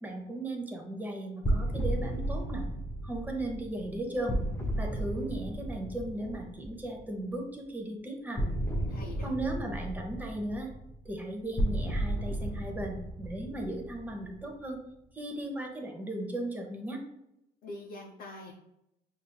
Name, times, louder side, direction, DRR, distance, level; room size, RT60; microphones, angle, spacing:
voice 1, 0.0-2.7 3.0-4.4 4.8-8.4 9.2-10.7 11.0-14.8 15.1-17.0, right 1 dB, 10° right, 1 dB, 0.8 m, -36 dB
sound 1, 1.4-7.2 8.4-14.6, right 1 dB, 15° left, 0.6 m, -34 dB
voice 2, 8.9-9.3 17.6-18.5, left 2 dB, 55° left, -1 dB, 0.7 m, -44 dB
5.5 x 2.6 x 2.2 m, 0.84 s
cardioid pair, 110°, 17 cm